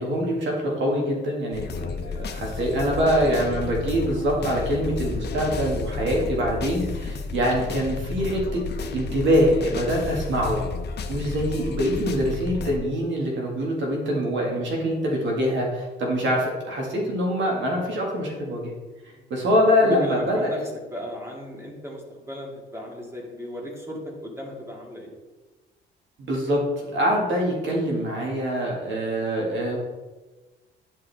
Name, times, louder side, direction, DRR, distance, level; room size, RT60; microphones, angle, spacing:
voice 1, 0.0-8.6 8.9-10.6 11.1-18.7 19.3-20.6 26.2-26.6 26.9-29.8, equal, 70° right, -2 dB, 2.1 m, -24 dB
sound 1, 1.5-12.8, left 4 dB, 55° left, 0.7 m, -32 dB
voice 2, 19.8-20.6 20.9-25.1, equal, 15° right, -2 dB, 2.2 m, -37 dB
10.0 x 4.7 x 3.5 m, 1.2 s
cardioid pair, 90°, 20 cm